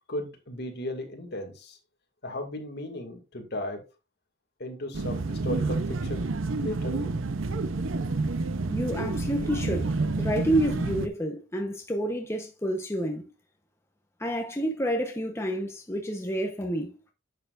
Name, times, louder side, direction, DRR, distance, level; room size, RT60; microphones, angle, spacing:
voice 1, 0.1-1.8 2.2-3.8 4.6-6.3 6.5-7.1, left 1 dB, 55° left, 2.2 m, -35 dB
sound 1, 4.9-11.1, right 3 dB, 85° right, 0.7 m, -29 dB
voice 2, 8.7-13.3 14.2-17.0, equal, 15° left, 0.9 m, -29 dB
10.5 x 6.6 x 2.5 m
head